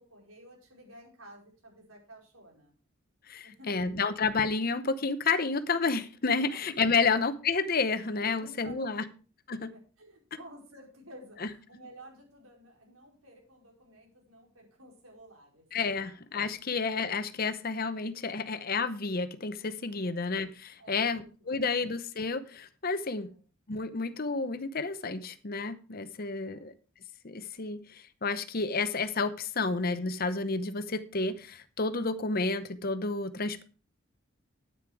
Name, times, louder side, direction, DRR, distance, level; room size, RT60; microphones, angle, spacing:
voice 1, 0.0-2.8 3.4-3.9 6.5-6.6 7.0-7.3 8.3-8.9 9.5-15.6 16.0-16.1 20.0-20.3 20.8-21.8 23.1-23.4 26.4-26.7, right 1 dB, 90° right, 0 dB, 4.9 m, -52 dB
voice 2, 3.3-9.0 9.5-9.7 15.7-23.3 23.7-26.7 27.2-33.6, left 4 dB, 45° left, 12 dB, 0.8 m, -30 dB
9.9 x 9.4 x 4.7 m, 0.38 s
head